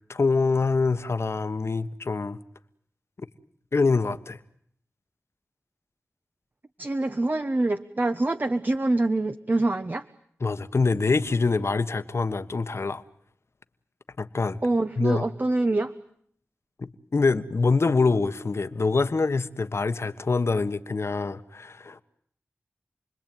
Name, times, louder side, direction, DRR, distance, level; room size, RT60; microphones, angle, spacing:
voice 1, 0.1-2.4 3.7-4.4 10.4-13.0 14.2-14.6 15.0-15.2 16.8-22.0, left 4 dB, 65° left, 11 dB, 1.4 m, -25 dB
voice 2, 6.8-10.0 14.6-15.9, right 2 dB, 40° right, 10 dB, 1.1 m, -25 dB
29.5 x 21.0 x 9.2 m, 0.67 s
cardioid pair, 40°, 5 cm